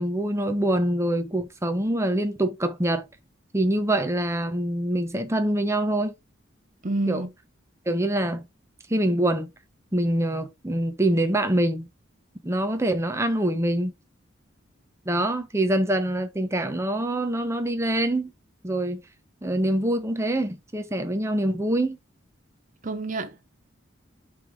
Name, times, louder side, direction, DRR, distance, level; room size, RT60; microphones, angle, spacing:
voice 1, 0.0-3.0 3.5-6.1 7.1-7.2 7.9-8.4 8.9-9.5 9.9-11.9 12.4-13.9 15.1-18.3 18.6-19.0 19.4-22.0, right 1 dB, 15° right, 0.9 m, -25 dB
voice 2, 6.8-7.3 22.8-23.4, right 2 dB, 40° right, 0.9 m, -28 dB
5.8 x 3.4 x 4.8 m
head